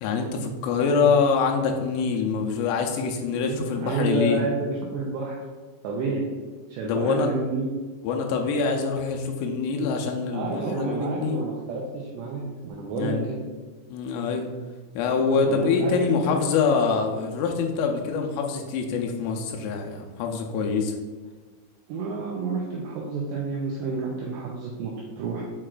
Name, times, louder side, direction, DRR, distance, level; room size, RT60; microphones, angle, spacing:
voice 1, 0.0-4.4 6.8-7.3 8.0-11.4 12.9-13.3 13.9-14.5 15.0-20.9, left 5 dB, 85° left, 2 dB, 3.1 m, -25 dB
voice 2, 3.3-5.4 5.8-6.3 6.7-7.7 10.3-13.4 15.4-16.4 21.9-25.4, right 3 dB, 85° right, -2 dB, 2.4 m, -30 dB
8.7 x 4.6 x 2.5 m, 1.3 s
omnidirectional pair, 5.8 m